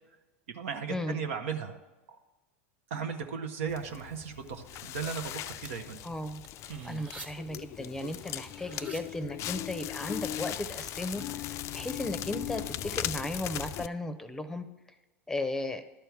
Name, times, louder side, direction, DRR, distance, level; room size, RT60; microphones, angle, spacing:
voice 1, 0.5-1.8 2.1-2.2 2.9-6.0 6.7-7.0, right 6 dB, 70° right, 6 dB, 1.0 m, -36 dB
Crackle, 3.7-13.9, left 13 dB, 40° left, 0.3 m, -38 dB
sound 1, 5.6-5.8 6.4-7.3 8.0-9.0 10.1-10.2 10.5-11.3, right 2 dB, 15° right, 1.5 m, -49 dB
voice 2, 6.0-6.4 6.8-14.6 15.3-15.8, left 1 dB, 5° left, 9 dB, 0.8 m, -35 dB
12.0 x 4.5 x 7.0 m, 1.1 s
hypercardioid pair, 90°, 7 cm